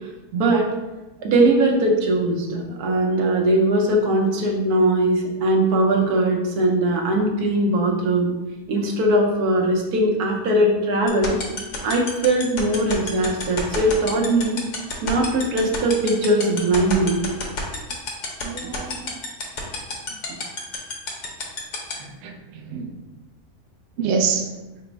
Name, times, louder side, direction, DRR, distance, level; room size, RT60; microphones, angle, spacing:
voice 1, 0.3-0.7 1.2-8.3 8.7-11.4 11.8-14.6 15.0-17.2, right 1 dB, 85° right, 0 dB, 1.2 m, -20 dB
sound 1, 11.1-21.9, left 5 dB, 60° left, 1.0 m, -28 dB
voice 2, 18.4-19.2 22.0-23.0 24.0-24.5, right 5 dB, 65° right, 1 dB, 0.7 m, -27 dB
4.1 x 2.0 x 4.5 m, 1.1 s
omnidirectional pair, 1.6 m